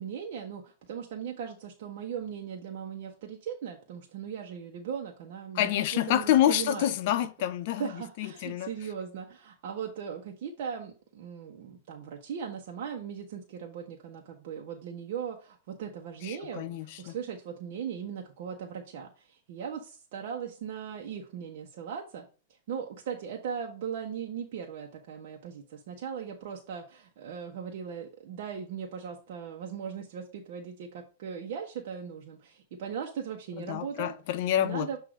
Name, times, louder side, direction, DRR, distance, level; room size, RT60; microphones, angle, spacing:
voice 1, 0.0-6.9 7.8-22.3 22.7-34.1 34.6-35.0, right 7 dB, 60° right, 1.1 m, -38 dB
voice 2, 5.5-7.9 8.2-8.7 16.2-17.2 33.6-35.0, left 12 dB, 50° left, 0.6 m, -27 dB
7.8 x 2.7 x 5.1 m
supercardioid pair, 150°, 0 cm